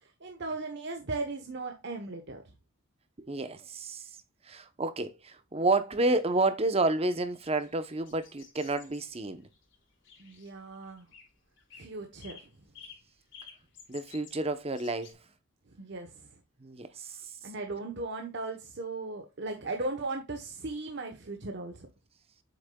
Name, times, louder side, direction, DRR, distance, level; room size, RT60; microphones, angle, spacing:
voice 1, 0.0-2.4 10.2-11.1 11.7-12.5 15.7-16.3 17.4-21.9, right 3 dB, 60° right, 1.0 m, -37 dB
voice 2, 3.2-4.0 4.5-9.4 13.9-15.2 16.6-17.2, right 2 dB, 30° right, 0.8 m, -30 dB
sound 1, 7.0-15.1, left 6 dB, 60° left, 3.1 m, -53 dB
8.0 x 6.4 x 2.3 m
head